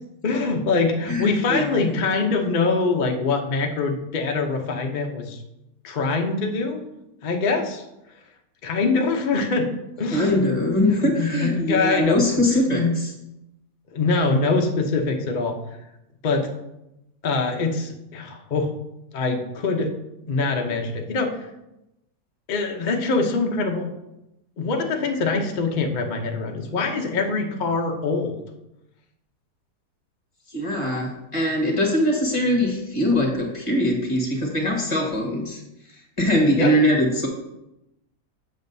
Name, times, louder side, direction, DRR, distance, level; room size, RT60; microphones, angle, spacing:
voice 1, 0.2-5.4 5.8-6.8 7.2-7.8 8.6-9.7 10.0-10.4 10.9-12.4 12.7-13.0 13.9-15.6 16.2-16.5 17.2-18.7 19.1-19.9 20.3-21.5 22.5-23.9 24.6-28.4 36.6-36.7, left 3 dB, 45° left, 2 dB, 0.6 m, -24 dB
voice 2, 1.1-1.8 10.1-13.1 30.5-35.6 36.2-37.3, left 1 dB, 20° left, 0 dB, 1.4 m, -22 dB
7.6 x 7.2 x 2.7 m, 0.91 s
omnidirectional pair, 1.7 m